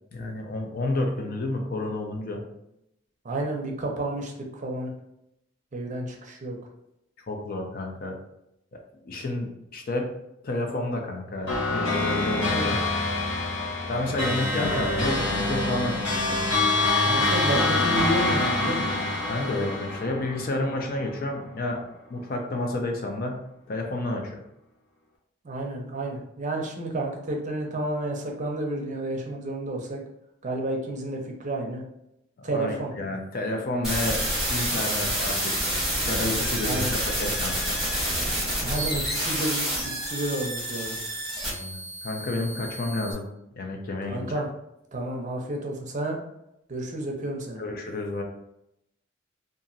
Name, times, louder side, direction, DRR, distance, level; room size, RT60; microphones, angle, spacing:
voice 1, 0.1-2.4 7.3-8.2 9.1-10.1 10.4-12.8 13.9-16.4 19.3-21.8 22.1-23.4 23.7-24.4 32.5-34.2 34.5-35.5 36.0-37.8 41.4-43.3 43.5-44.3 47.6-48.2, left 2 dB, 50° left, 3 dB, 0.5 m, -30 dB
voice 2, 3.2-4.9 5.7-6.6 12.3-12.7 17.0-18.9 25.4-30.0 30.4-31.8 32.4-32.9 36.6-36.9 38.6-41.0 44.1-44.5 44.9-46.2 46.7-47.6, right 1 dB, 40° right, 1 dB, 0.5 m, -31 dB
sound 1, 11.5-21.1, left 2 dB, 75° left, 0.8 m, -26 dB
sound 2, 33.8-43.1, right 1 dB, ahead, 1.1 m, -28 dB
2.8 x 2.5 x 2.6 m, 0.82 s
head